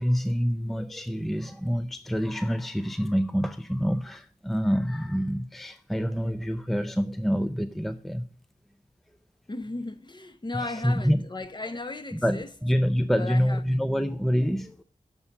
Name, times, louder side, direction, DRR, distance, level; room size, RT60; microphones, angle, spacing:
voice 1, 0.0-8.3 10.5-11.2 12.1-14.8, equal, ahead, 0.5 m, -27 dB
voice 2, 9.5-12.5 13.2-13.8, left 2 dB, 35° left, 0.9 m, -36 dB
7.0 x 5.4 x 7.0 m
wide cardioid pair, 85°, 14 cm